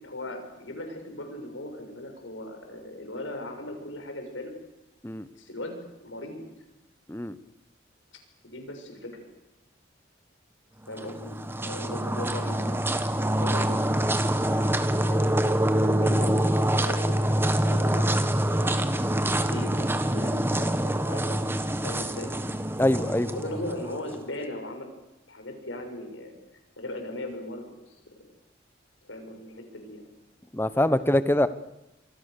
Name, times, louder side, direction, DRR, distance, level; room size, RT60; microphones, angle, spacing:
voice 1, 0.0-4.5 5.3-6.4 8.4-9.3 10.9-11.3 11.6-12.8 13.2-13.8 14.1-14.6 15.0-15.3 15.8-19.9 20.1-21.4 21.8-22.3 23.3-24.9 25.3-26.3 26.8-27.7 29.0-30.0, left 1 dB, 85° left, 4 dB, 6.8 m, -38 dB
sound 1, 10.9-24.2, right 1 dB, 10° right, 1.3 m, -25 dB
voice 2, 22.8-23.3 30.5-31.5, left 1 dB, 10° left, 13 dB, 1.0 m, -23 dB
27.5 x 24.0 x 6.9 m, 0.96 s
head